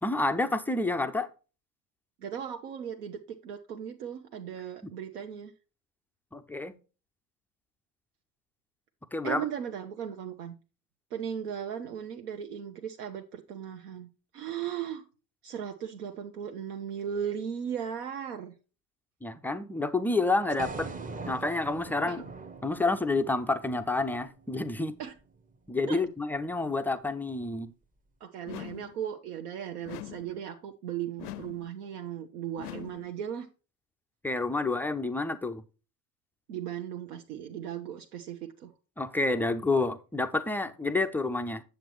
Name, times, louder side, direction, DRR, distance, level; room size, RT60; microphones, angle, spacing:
voice 1, 0.0-1.3 4.8-4.9 6.3-6.7 9.1-9.4 19.2-20.9 21.3-22.2 22.6-24.9 25.7-27.7 34.2-35.6 39.0-41.6, left 2 dB, 5° left, 0.3 m, -29 dB
voice 2, 2.2-5.5 9.2-10.5 11.1-15.0 15.4-18.5 22.1-22.3 25.0-25.1 25.9-26.0 28.2-33.5 36.5-38.7, right 9 dB, 70° right, 0.9 m, -37 dB
sound 1, 20.6-24.7, right 3 dB, 15° right, 0.8 m, -42 dB
sound 2, 28.5-29.0 29.9-30.4 31.2-31.7 32.6-33.1, left 12 dB, 75° left, 0.6 m, -42 dB
8.9 x 7.2 x 3.0 m
figure-of-eight pair, 70°, 47 cm